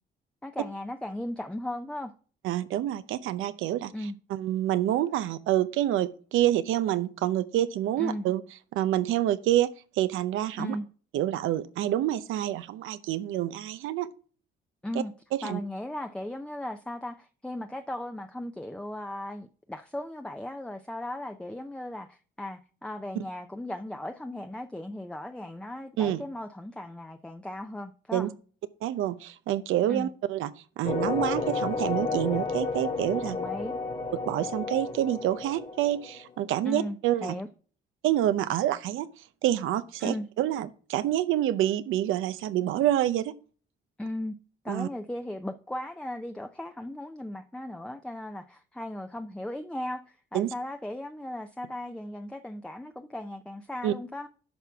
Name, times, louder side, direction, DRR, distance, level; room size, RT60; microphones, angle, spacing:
voice 1, 0.4-2.1 3.9-4.2 8.0-8.2 10.6-10.9 14.8-15.1 15.4-28.3 29.9-30.1 33.2-33.8 35.0-35.1 36.6-37.5 40.0-40.3 44.0-44.3 44.6-54.3, left 1 dB, 5° left, 0.6 m, -37 dB
voice 2, 2.4-3.9 4.3-8.4 8.7-9.7 10.0-10.8 11.1-14.1 14.9-15.0 15.3-15.6 26.0-26.2 28.1-28.3 28.8-30.5 30.8-33.4 34.3-37.4 38.0-39.1 39.4-43.3 44.7-44.9 50.3-50.5 53.8-53.9, right 13 dB, 90° right, 0.7 m, -27 dB
sound 1, 30.8-36.3, left 3 dB, 40° left, 2.0 m, -31 dB
10.5 x 5.8 x 3.5 m
cardioid pair, 90°, 20 cm